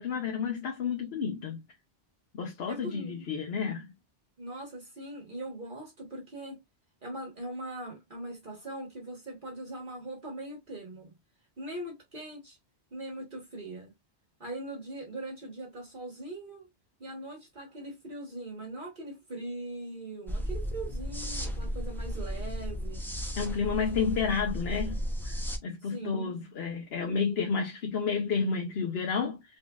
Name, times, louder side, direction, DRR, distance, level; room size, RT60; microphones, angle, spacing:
voice 1, 0.0-1.6 2.3-3.9 23.4-29.4, left 5 dB, 70° left, 1.0 m, -31 dB
voice 2, 2.7-3.3 4.4-6.6 7.0-11.1 11.6-12.6 12.9-13.9 14.4-16.7 17.0-23.1 25.5-26.4, right 1 dB, 50° right, 1.4 m, -41 dB
sound 1, 20.3-25.6, equal, ahead, 0.6 m, -34 dB
4.0 x 3.0 x 2.3 m
omnidirectional pair, 1.1 m